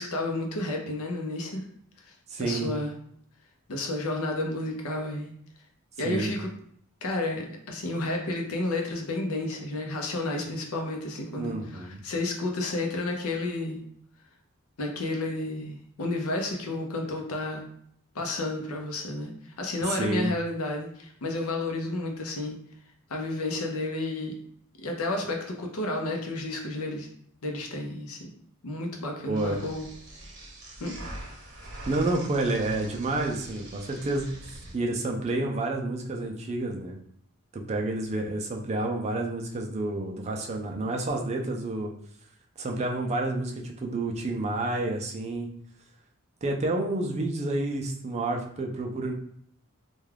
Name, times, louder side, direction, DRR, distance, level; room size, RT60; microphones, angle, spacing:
voice 1, 0.0-1.6 2.4-3.0 3.7-5.3 6.0-6.5 7.0-13.8 14.8-17.7 18.1-19.3 19.6-22.6 23.1-24.4 24.8-27.1 27.4-28.3 28.6-29.9 30.8-30.9, left 2 dB, 85° left, 2 dB, 0.6 m, -31 dB
voice 2, 2.3-2.7 6.0-6.3 11.4-12.0 19.9-20.3 29.2-29.6 31.9-37.0 37.5-41.9 42.6-45.5 46.4-49.1, right 2 dB, 30° right, 2 dB, 0.3 m, -29 dB
sound 1, 29.4-34.8, right 1 dB, 55° right, 0.9 m, -43 dB
2.3 x 2.3 x 3.2 m, 0.65 s
head